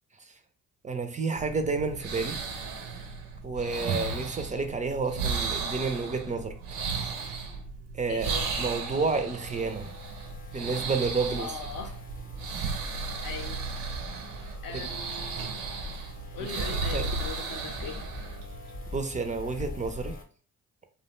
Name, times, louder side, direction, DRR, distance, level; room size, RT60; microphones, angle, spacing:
voice 1, 0.8-2.4 3.4-6.5 7.9-9.9 10.5-11.5 16.7-17.0 18.9-20.2, right 4 dB, 20° right, 0.4 m, -30 dB
sound 1, 1.3-18.9, right 4 dB, 85° right, 0.5 m, -35 dB
voice 2, 8.1-8.5 11.4-12.0 13.2-13.6 14.6-15.6 16.3-18.0, left 6 dB, 60° left, 0.6 m, -40 dB
sound 2, 9.4-20.2, left 3 dB, 25° left, 0.6 m, -44 dB
2.4 x 2.1 x 3.0 m
hypercardioid pair, 55°, 38 cm